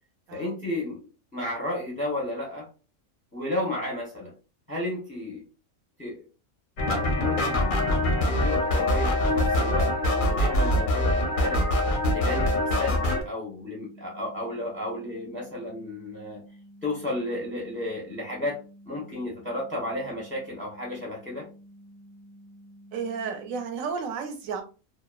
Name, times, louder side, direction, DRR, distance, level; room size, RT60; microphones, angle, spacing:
voice 1, 0.3-1.0 1.3-2.7 3.3-4.3 4.7-5.4 6.0-6.2 7.2-11.7 12.1-12.5 12.8-16.4 16.8-21.5, left 1 dB, 10° left, -3 dB, 0.5 m, -33 dB
sound 1, 6.8-13.2, left 1 dB, 60° left, 0.5 m, -24 dB
sound 2, 13.6-23.6, equal, 40° right, 0.9 m, -51 dB
voice 2, 22.9-24.6, right 5 dB, 75° right, 6 dB, 1.0 m, -33 dB
2.8 x 2.0 x 2.2 m, 0.33 s
omnidirectional pair, 1.5 m